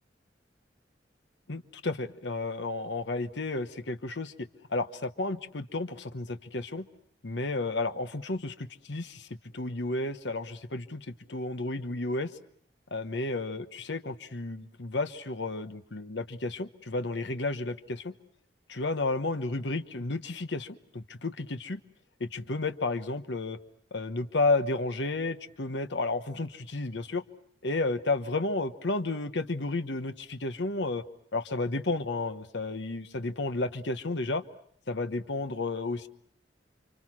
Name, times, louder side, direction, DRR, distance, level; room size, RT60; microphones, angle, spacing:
voice 1, 1.5-6.9 7.2-12.3 12.9-18.1 18.7-21.8 22.2-23.6 23.9-27.2 27.6-31.0 31.3-34.4 34.9-36.1, left 2 dB, 70° left, 9 dB, 1.1 m, -32 dB
29.5 x 25.5 x 6.1 m, 0.67 s
head